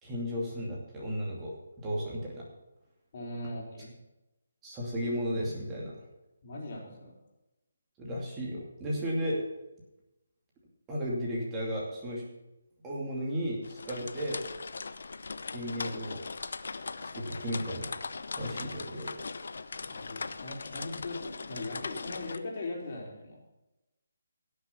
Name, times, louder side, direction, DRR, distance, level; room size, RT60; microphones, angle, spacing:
voice 1, 0.0-2.5 4.6-5.9 8.0-9.4 10.9-12.2 12.8-14.4 15.5-16.2 17.1-19.2, equal, 15° right, -4 dB, 2.6 m, -34 dB
voice 2, 3.1-3.9 6.4-7.1 19.9-23.4, left 2 dB, 45° left, -2 dB, 3.7 m, -40 dB
sound 1, 13.6-22.4, left 4 dB, 65° left, 0.7 m, -39 dB
17.0 x 6.7 x 5.7 m, 0.97 s
figure-of-eight pair, 155°, 0 cm